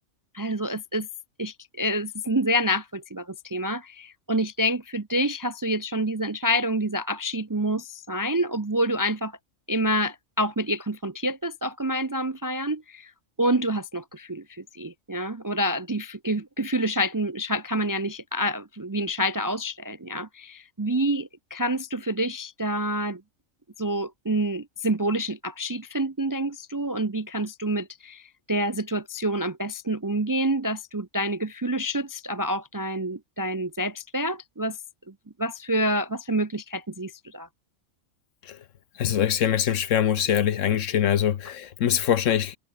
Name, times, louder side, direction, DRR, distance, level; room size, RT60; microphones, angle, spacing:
voice 1, 0.3-1.1 1.4-9.4 9.7-13.1 13.4-23.2 23.8-34.8 35.4-37.5, equal, 25° right, 0.4 m, -27 dB
voice 2, 39.0-42.6, left 9 dB, 70° left, 1.2 m, -23 dB
omnidirectional pair, 1.4 m